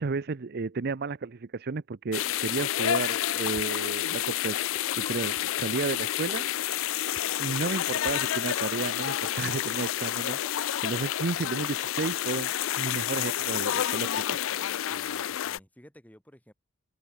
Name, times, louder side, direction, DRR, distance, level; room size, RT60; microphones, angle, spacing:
voice 1, 0.0-6.5 7.4-14.6, right 4 dB, 50° right, 0.6 m, -33 dB
sound 1, 2.1-15.6, left 11 dB, 70° left, 0.4 m, -29 dB
sound 2, 3.5-3.6 4.4-6.0 6.2-7.6 8.0-8.1 8.9-9.0 9.2-10.9, left 2 dB, 25° left, 3.8 m, -50 dB
voice 2, 14.8-16.5, equal, 10° left, 7.9 m, -53 dB
head